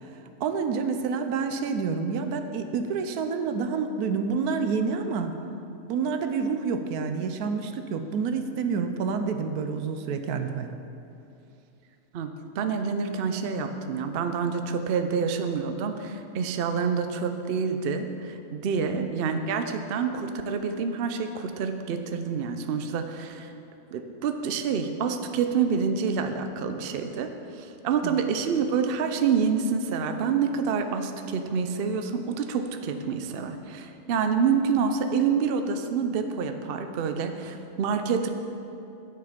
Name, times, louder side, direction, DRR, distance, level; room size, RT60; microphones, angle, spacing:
voice 1, 0.0-5.3 5.9-10.7 18.8-19.1 28.0-28.1, right 5 dB, 85° right, 7 dB, 1.1 m, -28 dB
voice 2, 12.6-23.5 23.9-27.3 27.6-38.3, right 6 dB, 60° right, 7 dB, 0.6 m, -27 dB
9.5 x 6.8 x 5.1 m, 2.7 s
omnidirectional pair, 1.6 m